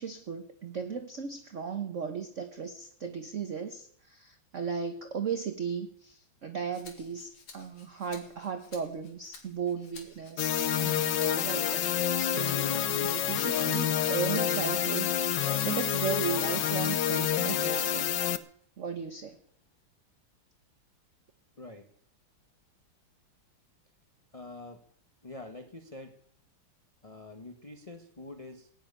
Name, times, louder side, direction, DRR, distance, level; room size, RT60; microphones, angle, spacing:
voice 1, 0.0-11.9 12.2-18.1 18.8-19.4, right 6 dB, 45° right, 8 dB, 1.2 m, -36 dB
Rattle (instrument), 6.7-18.2 18.6-19.8, left 5 dB, 90° left, 3.2 m, -51 dB
sound 1, 10.4-18.4, left 10 dB, 60° left, 1.3 m, -28 dB
voice 2, 21.6-21.9 24.3-24.9 25.2-26.2 27.0-28.7, left 2 dB, 20° left, 6 dB, 1.1 m, -45 dB
17.0 x 7.6 x 9.8 m, 0.63 s
omnidirectional pair, 2.4 m